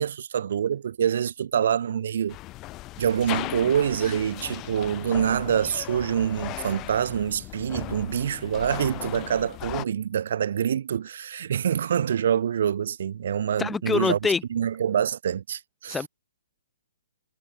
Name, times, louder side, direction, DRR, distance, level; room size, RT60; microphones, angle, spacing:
voice 1, 0.0-2.4 3.0-14.2 14.5-16.0, right 8 dB, 65° right, 2.8 m, -26 dB
sound 1, 2.3-9.8, left 19 dB, 25° left, 2.5 m, -37 dB
voice 2, 13.6-14.4 15.9-16.1, left 5 dB, 10° left, 1.4 m, -25 dB
hypercardioid pair, 135°, 0 cm